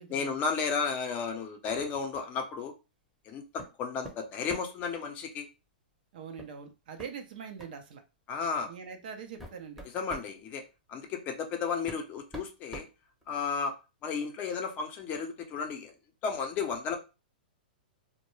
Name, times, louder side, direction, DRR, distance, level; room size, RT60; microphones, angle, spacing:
voice 1, 0.1-2.7 3.3-5.5 8.3-8.7 9.9-10.6 10.9-12.9 13.3-13.7 14.0-15.9 16.2-17.0, left 5 dB, 35° left, 4 dB, 0.6 m, -33 dB
sound 1, 3.6-3.8 4.0-4.8 6.4-6.6 7.0-7.1 7.6-7.8 8.6-8.7 9.2-10.3 11.4-11.5 11.9-13.6, right 1 dB, ahead, 0.7 m, -45 dB
voice 2, 6.1-8.0 8.7-9.8, right 6 dB, 60° right, 6 dB, 0.6 m, -43 dB
2.1 x 2.1 x 3.1 m, 0.29 s
hypercardioid pair, 120°, 5 cm